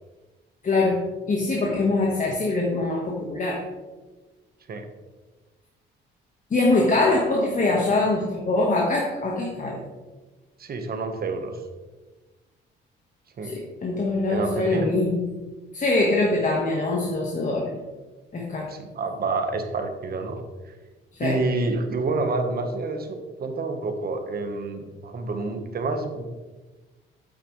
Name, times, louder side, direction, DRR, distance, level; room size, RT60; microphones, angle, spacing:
voice 1, 0.6-3.6 6.5-9.8 13.4-15.3 15.7-17.7 18.3-18.7 21.1-21.4, left 2 dB, 40° left, -2 dB, 1.6 m, -23 dB
voice 2, 10.6-11.5 13.4-13.6 14.3-15.0 18.7-20.7 21.2-26.3, right 3 dB, 50° right, 6 dB, 1.4 m, -28 dB
8.9 x 8.4 x 3.3 m, 1.2 s
cardioid pair, 90°, 20 cm